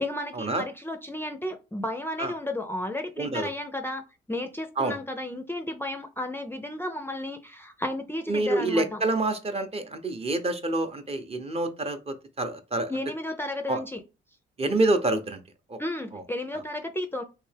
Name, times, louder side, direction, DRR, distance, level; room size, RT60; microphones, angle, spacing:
voice 1, 0.0-9.0 12.9-14.0 15.8-17.2, left 1 dB, 10° left, 0.5 m, -33 dB
voice 2, 3.2-3.5 4.8-5.0 8.3-12.9 13.7-13.8 14.6-15.4 15.7-15.8 16.1-16.2, right 2 dB, 30° right, 0.7 m, -27 dB
3.3 x 2.8 x 3.3 m
cardioid pair, 90°, 20 cm